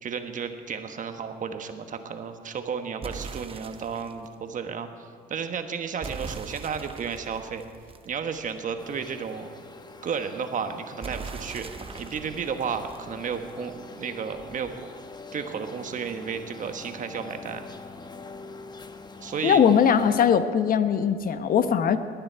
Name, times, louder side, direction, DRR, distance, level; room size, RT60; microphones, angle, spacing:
voice 1, 0.0-7.6 8.0-9.5 10.0-11.7 12.0-14.7 15.3-17.6 19.2-19.6, right 6 dB, 50° right, 7 dB, 1.3 m, -33 dB
sound 1, 3.0-4.3 6.0-8.7 11.0-13.7, right 5 dB, 35° right, 0.8 m, -41 dB
sound 2, 8.8-20.2, left 3 dB, 25° left, 1.0 m, -44 dB
voice 2, 19.4-22.0, left 7 dB, 55° left, 10 dB, 0.9 m, -20 dB
21.0 x 9.6 x 4.6 m, 2.2 s
supercardioid pair, 80°, 17 cm